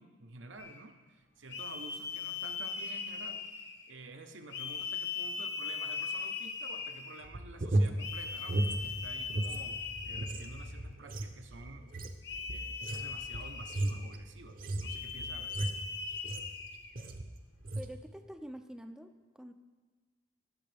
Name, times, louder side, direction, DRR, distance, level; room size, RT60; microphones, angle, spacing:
voice 1, 0.0-3.5 3.9-8.6 8.8-11.9 12.5-15.9, right 3 dB, 85° right, 6 dB, 0.8 m, -50 dB
sound 1, 0.6-0.8 1.5-3.9 4.5-7.2 8.0-10.8 12.2-14.1 14.8-16.9, left 5 dB, 70° left, 1.0 m, -39 dB
sound 2, 7.2-9.6 9.9-16.6 17.0-17.3 17.6-18.0, right 1 dB, 45° right, 0.7 m, -35 dB
sound 3, 8.2-10.9, left 1 dB, 40° left, 0.7 m, -48 dB
voice 2, 17.8-19.5, equal, 5° right, 6 dB, 0.4 m, -47 dB
17.0 x 7.8 x 3.4 m, 1.3 s
head